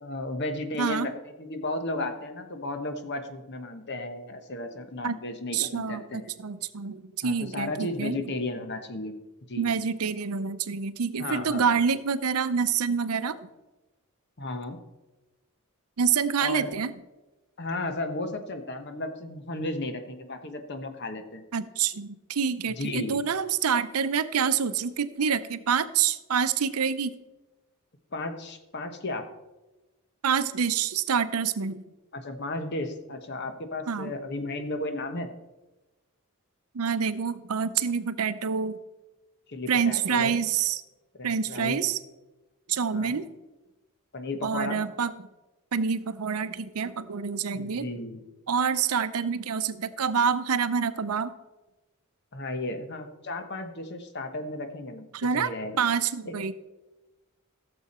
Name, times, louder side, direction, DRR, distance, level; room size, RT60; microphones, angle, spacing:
voice 1, 0.0-6.3 7.2-9.1 9.5-9.7 11.2-11.6 14.4-14.8 16.4-16.7 17.6-21.4 22.7-23.2 28.1-29.2 32.1-35.3 39.5-40.3 41.2-41.8 42.9-43.2 44.1-44.8 47.5-48.2 52.3-55.0 55.3-55.8 56.3-56.4, left 2 dB, 50° left, 7 dB, 1.1 m, -34 dB
voice 2, 0.8-1.1 5.0-5.2 5.5-8.2 9.6-13.4 16.0-16.9 21.5-27.1 30.2-31.8 33.9-34.1 36.7-38.8 39.7-40.8 41.2-42.0 42.7-43.3 44.4-45.1 45.7-47.9 48.5-51.3 55.1-56.5, right 6 dB, 90° right, 13 dB, 0.6 m, -27 dB
15.5 x 7.0 x 4.3 m, 1.1 s
head